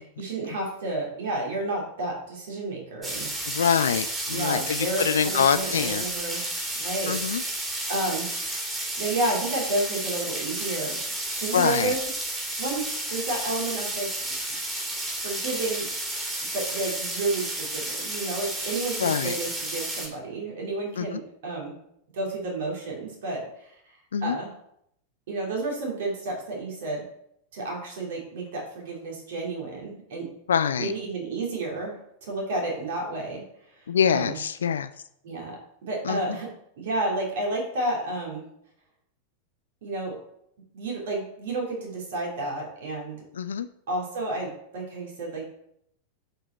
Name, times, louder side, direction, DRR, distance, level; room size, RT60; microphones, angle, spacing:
voice 1, 0.0-3.3 4.3-6.4 6.7-7.6 7.9-8.3 9.0-11.0 11.4-12.0 12.6-14.3 15.2-15.9 16.5-21.8 22.1-23.8 24.2-24.5 25.3-27.1 27.5-30.3 30.8-33.4 33.7-34.4 35.2-35.6 35.8-36.5 36.8-38.4 39.8-40.2 40.7-43.2 43.9-45.4, right 2 dB, 55° right, -1 dB, 2.8 m, -31 dB
sound 1, 3.0-20.1, right 1 dB, 10° right, 2.8 m, -32 dB
voice 2, 3.5-6.0 7.1-7.4 11.5-11.9 19.0-19.4 21.0-21.2 24.1-24.4 30.5-30.9 33.9-34.9 36.1-36.2 43.4-43.7, left 7 dB, 65° left, 12 dB, 0.3 m, -25 dB
7.8 x 4.9 x 4.3 m, 0.73 s
figure-of-eight pair, 90°, 0 cm